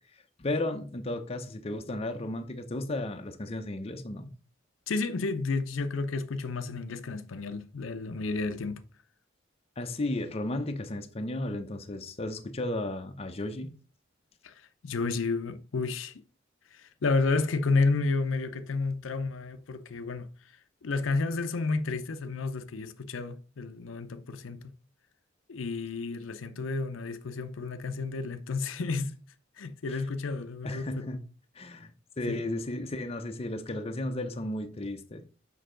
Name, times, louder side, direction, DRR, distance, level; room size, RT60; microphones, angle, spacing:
voice 1, 0.1-4.3 9.8-13.7 29.9-30.0 30.6-31.2 31.5-35.2, left 1 dB, 30° left, 0.6 m, -34 dB
voice 2, 4.9-8.8 14.4-16.1 16.7-20.3 20.8-24.7 25.5-29.2 29.6-31.1 32.3-32.4, left 3 dB, 80° left, 0.6 m, -31 dB
6.6 x 5.4 x 3.8 m
head